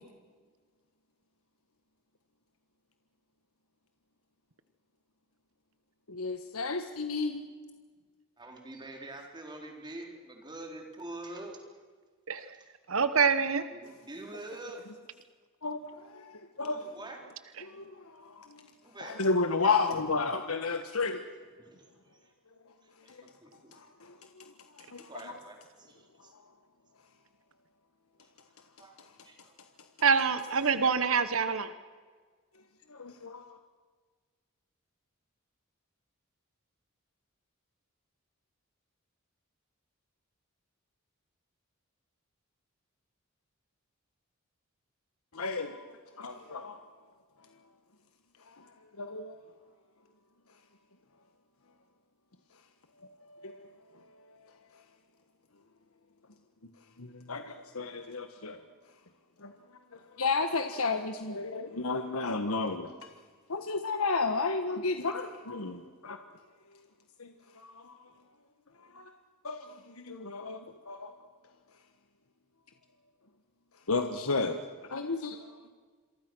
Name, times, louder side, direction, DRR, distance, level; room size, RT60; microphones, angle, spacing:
voice 1, 6.1-7.4 15.6-16.9 17.6-18.7 19.0-21.3 22.6-22.7 23.1-23.2 23.7-25.4 26.2-26.4 32.9-33.6 45.3-46.9 48.4-49.4 53.2-54.8 57.0-58.6 59.4-59.5 59.9-63.1 63.5-66.2 66.7-66.8 67.2-68.1 68.8-69.1 69.4-71.2 73.9-75.7, left 4 dB, 85° left, 7 dB, 1.5 m, -33 dB
voice 2, 8.4-11.6 13.1-13.2 13.7-14.8 16.6-17.2 18.8-19.2 19.6-20.1 21.6-22.3 23.0-23.7 25.1-26.3 28.2-28.3 28.8-29.0 29.2-29.6 30.6-30.7, right 2 dB, 20° right, 2 dB, 4.0 m, -45 dB
voice 3, 12.9-13.7 17.6-17.7 30.0-31.7, right 5 dB, 70° right, 12 dB, 1.1 m, -26 dB
27.5 x 23.5 x 6.3 m, 1.5 s
head